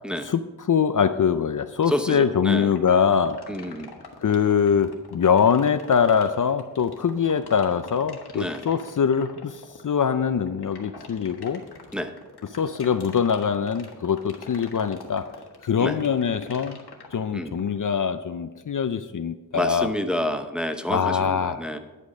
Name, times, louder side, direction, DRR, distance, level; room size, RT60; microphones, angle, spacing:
voice 1, 0.7-3.4 4.2-11.6 12.5-15.3 15.6-16.8 17.1-19.9 20.9-21.6, left 7 dB, 55° left, 11 dB, 0.5 m, -23 dB
sound 1, 1.8-17.8, left 4 dB, 75° left, 1.5 m, -43 dB
voice 2, 1.9-2.7 3.5-3.9 8.3-8.6 11.9-12.1 15.8-16.0 17.3-17.5 19.5-21.8, left 1 dB, ahead, 7 dB, 0.8 m, -28 dB
10.5 x 8.2 x 5.3 m, 1.1 s
wide cardioid pair, 85°, 39 cm